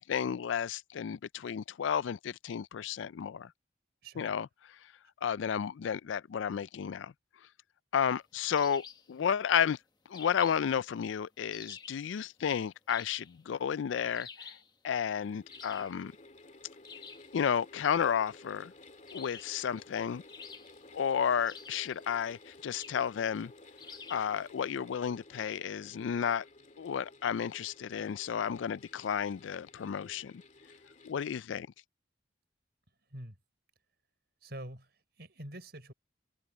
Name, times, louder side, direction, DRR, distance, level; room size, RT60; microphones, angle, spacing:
voice 1, 0.0-3.5 4.2-4.5 5.2-7.1 7.9-9.8 10.1-14.6 14.8-16.1 17.3-18.7 19.1-20.2 20.9-23.5 24.1-26.4 26.8-30.4 31.0-31.7, left 8 dB, 75° left, 0.4 m, -32 dB
voice 2, 4.0-4.3 33.1-33.3 34.4-34.9 35.2-35.9, right 1 dB, 55° right, 6.0 m, -45 dB
sound 1, 8.5-9.1 10.1-10.7 11.5-12.0 12.9-13.4 14.1-14.7 15.5-16.0 16.8-17.3 19.1-19.6 20.3-21.0 21.5-22.0 22.7-23.1 23.8-24.3, left 5 dB, 20° left, 0.9 m, -49 dB
sound 2, 15.0-31.1, left 2 dB, 40° left, 2.6 m, -55 dB
head